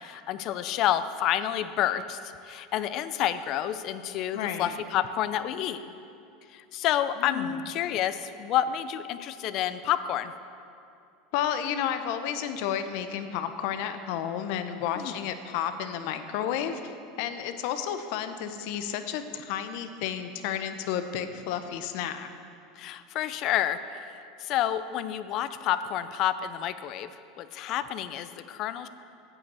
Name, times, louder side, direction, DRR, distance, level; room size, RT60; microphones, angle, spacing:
voice 1, 0.0-5.8 6.5-10.3 14.9-15.1 22.8-27.1 27.4-28.9, left 11 dB, 45° left, 12 dB, 0.4 m, -29 dB
voice 2, 4.3-4.7 7.2-7.6 11.3-22.3, left 9 dB, 65° left, 9 dB, 0.8 m, -32 dB
8.6 x 7.9 x 8.1 m, 2.5 s
supercardioid pair, 145°, 0 cm